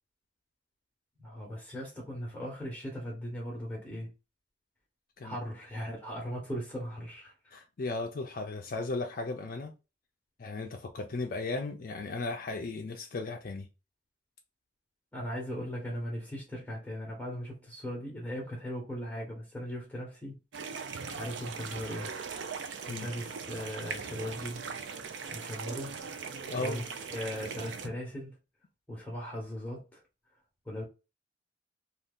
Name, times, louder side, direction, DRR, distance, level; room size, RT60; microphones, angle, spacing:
voice 1, 1.2-4.1 5.2-7.5 15.1-20.4 20.9-22.1 22.6-24.8 25.3-26.0 26.5-28.4 28.9-30.0 30.6-30.8, equal, 5° left, 0.9 m, -39 dB
voice 2, 7.5-9.7 10.4-13.7 22.9-23.1 26.5-26.8, left 3 dB, 50° left, 0.4 m, -36 dB
sound 1, 20.5-27.9, right 5 dB, 85° right, 0.5 m, -40 dB
2.7 x 2.4 x 3.5 m
head